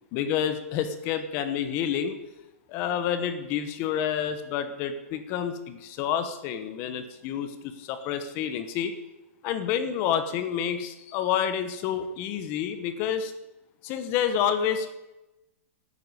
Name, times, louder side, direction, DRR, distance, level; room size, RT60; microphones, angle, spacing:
voice 1, 0.1-2.2 2.7-8.9 9.4-13.3 13.8-14.9, left 8 dB, 30° left, 10 dB, 1.0 m, -29 dB
11.5 x 9.5 x 9.7 m, 0.99 s
hypercardioid pair, 165°, 8 cm